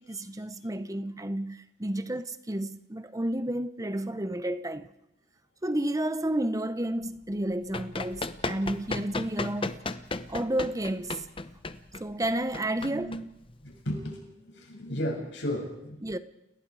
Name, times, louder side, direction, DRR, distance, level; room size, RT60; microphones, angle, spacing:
voice 1, 0.0-4.9 5.6-9.8 10.3-11.3 12.0-13.2 16.0-16.2, right 1 dB, 20° right, 0.9 m, -31 dB
Run, 7.4-13.8, left 3 dB, 30° left, 0.9 m, -36 dB
voice 2, 12.8-13.2 13.6-16.0, equal, 90° left, 7.0 m, -34 dB
30.0 x 20.5 x 4.9 m
head